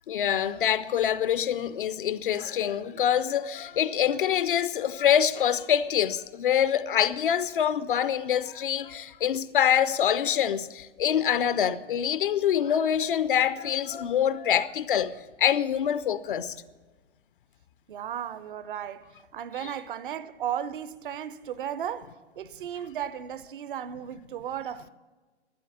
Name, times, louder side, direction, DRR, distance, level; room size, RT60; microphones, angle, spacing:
voice 1, 0.1-15.1 15.4-16.6 19.6-19.7, left 9 dB, 50° left, 0.6 m, -25 dB
voice 2, 17.9-24.9, right 9 dB, 50° right, 0.7 m, -35 dB
12.5 x 9.5 x 8.9 m
figure-of-eight pair, 115°, 34 cm